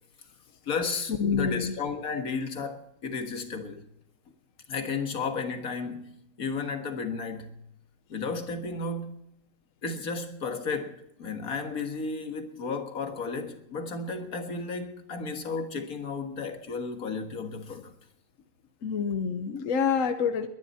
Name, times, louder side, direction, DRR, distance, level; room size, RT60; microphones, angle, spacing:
voice 1, 0.7-3.8 4.7-7.6 8.1-9.2 9.8-18.0, left 4 dB, 90° left, 2.1 m, -33 dB
voice 2, 1.2-1.7 18.8-20.5, left 6 dB, 70° left, 1.4 m, -27 dB
21.5 x 11.0 x 4.3 m
omnidirectional pair, 1.5 m